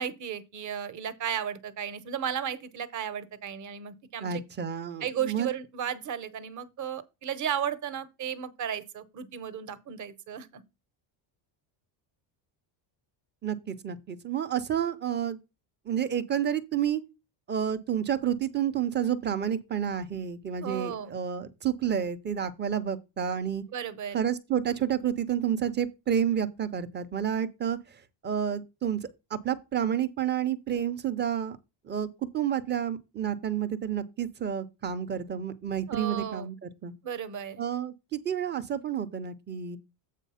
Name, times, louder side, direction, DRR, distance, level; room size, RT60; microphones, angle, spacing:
voice 1, 0.0-4.4 5.0-10.6 20.6-21.2 23.7-24.3 35.9-36.5 37.0-37.6, right 8 dB, 35° right, 0.9 m, -34 dB
voice 2, 4.2-5.5 13.4-15.4 15.9-17.0 17.5-23.6 24.1-29.0 29.3-31.6 31.8-32.1 32.3-36.9 37.6-39.8, right 9 dB, 20° right, 0.5 m, -30 dB
8.3 x 4.1 x 5.6 m
cardioid pair, 180°, 50 cm